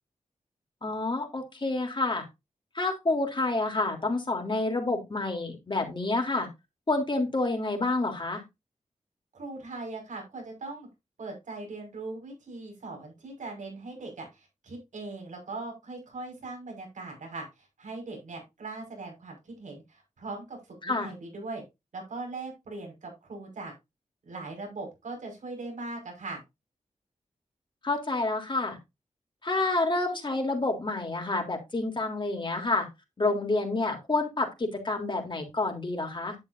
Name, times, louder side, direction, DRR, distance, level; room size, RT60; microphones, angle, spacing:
voice 1, 0.8-2.3 2.8-6.5 6.9-8.4 20.8-21.1 27.8-28.8 29.4-32.9 33.2-36.3, left 2 dB, 40° left, 3 dB, 3.4 m, -28 dB
voice 2, 9.3-10.9 11.2-21.6 21.9-23.7 24.2-26.4, right 3 dB, 85° right, 1 dB, 5.5 m, -40 dB
10.5 x 8.5 x 2.6 m, 0.23 s
cardioid pair, 55°, 13 cm